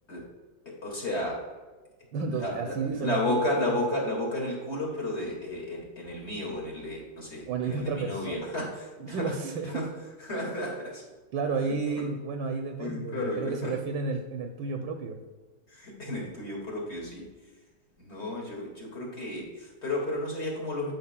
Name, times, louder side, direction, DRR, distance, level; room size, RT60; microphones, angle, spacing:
voice 1, 0.7-1.5 2.3-9.4 9.7-9.9 10.3-11.0 12.0-12.1 12.8-13.7 15.7-17.3 18.0-20.9, left 1 dB, 35° left, -3 dB, 2.1 m, -32 dB
voice 2, 2.1-3.8 7.5-8.5 9.0-9.8 10.3-10.4 11.3-15.2, right 4 dB, 75° right, 3 dB, 1.2 m, -32 dB
10.5 x 5.5 x 2.2 m, 1.3 s
omnidirectional pair, 2.1 m